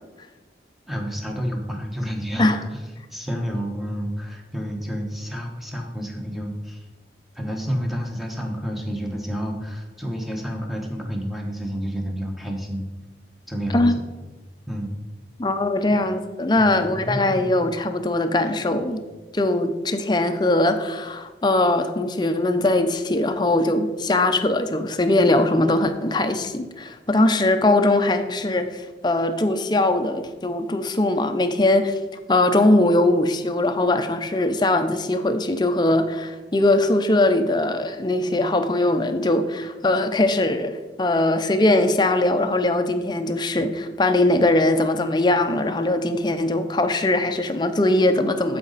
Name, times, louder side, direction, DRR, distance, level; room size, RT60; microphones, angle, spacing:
voice 1, 0.9-2.8 3.1-6.8 7.3-12.9 13.5-14.0 14.7-14.9 16.6-17.5 18.9-19.0, equal, ahead, 1 dB, 1.1 m, -30 dB
voice 2, 15.4-19.0 19.3-32.0 32.3-48.6, left 2 dB, 25° left, 8 dB, 0.6 m, -21 dB
12.5 x 5.1 x 4.0 m, 1.3 s
head